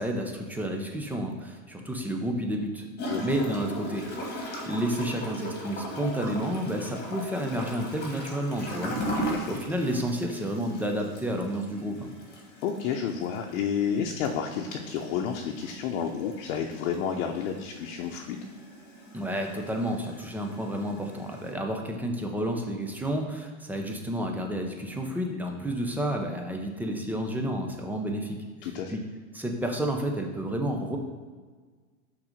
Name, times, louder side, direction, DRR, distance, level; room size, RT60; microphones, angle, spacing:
voice 1, 0.0-2.9 3.2-12.1 19.1-28.4 28.9-29.0 29.3-31.0, equal, 5° right, 2 dB, 0.4 m, -31 dB
Gurgling / Toilet flush, 3.0-21.5, equal, 25° left, 1.5 m, -39 dB
voice 2, 9.1-9.5 12.6-18.4 28.6-29.0, left 7 dB, 60° left, 2 dB, 0.8 m, -31 dB
6.0 x 3.9 x 5.0 m, 1.5 s
supercardioid pair, 125°, 43 cm